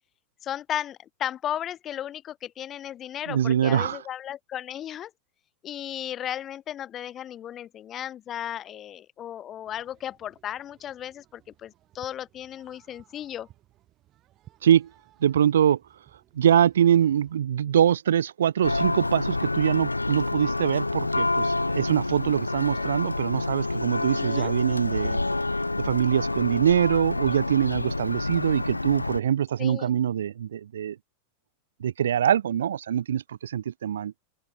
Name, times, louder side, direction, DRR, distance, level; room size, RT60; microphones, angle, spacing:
voice 1, 0.4-5.1 5.6-13.5 22.2-22.3 24.0-24.5 29.6-29.9, left 11 dB, 30° left, 0.5 m, -35 dB
voice 2, 3.3-4.0 14.6-14.9 15.2-15.8 16.3-25.2 25.8-31.0 31.8-34.1, right 9 dB, 65° right, 0.6 m, -23 dB
sound 1, 9.6-17.4, right 14 dB, 35° right, 7.5 m, -58 dB
Church bell, 18.6-29.2, left 2 dB, 85° left, 0.4 m, -28 dB
open air
figure-of-eight pair, 90°, 0 cm